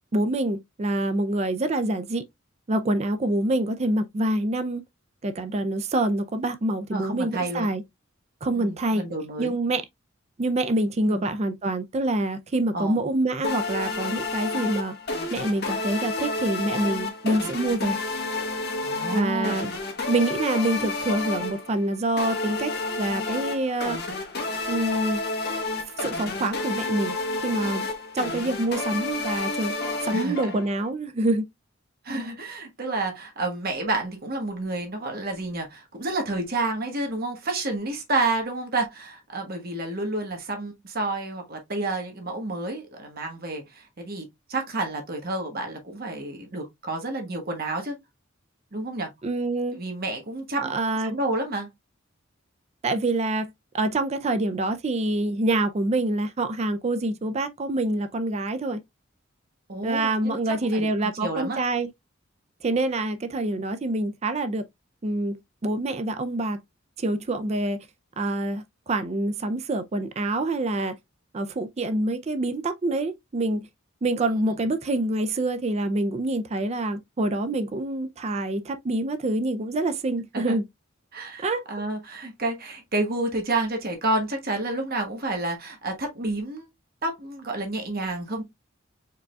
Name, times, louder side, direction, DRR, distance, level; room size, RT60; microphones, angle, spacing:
voice 1, 0.1-2.2 2.7-4.8 5.2-7.8 8.4-9.1 9.4-9.8 10.4-14.9 15.3-18.0 19.1-19.7 20.1-24.0 24.7-25.2 26.0-27.9 28.1-29.7 30.0-31.5 49.2-49.8 50.6-51.1 52.8-58.8 59.8-61.9 62.6-64.6 65.0-66.6 67.0-67.9 68.2-70.9 71.3-73.7 74.0-80.6 81.4-81.7, right 2 dB, 35° right, 0.4 m, -26 dB
voice 2, 6.9-7.7 8.5-9.5 11.1-11.3 12.7-13.0 18.8-19.5 30.1-30.6 32.0-47.9 48.7-49.1 49.7-50.7 51.0-51.7 59.7-61.6 80.3-80.6 81.1-86.7 87.0-88.4, right 2 dB, 50° right, 1.3 m, -30 dB
sound 1, 13.4-30.9, left 3 dB, 55° left, 1.4 m, -30 dB
4.7 x 3.7 x 2.3 m
head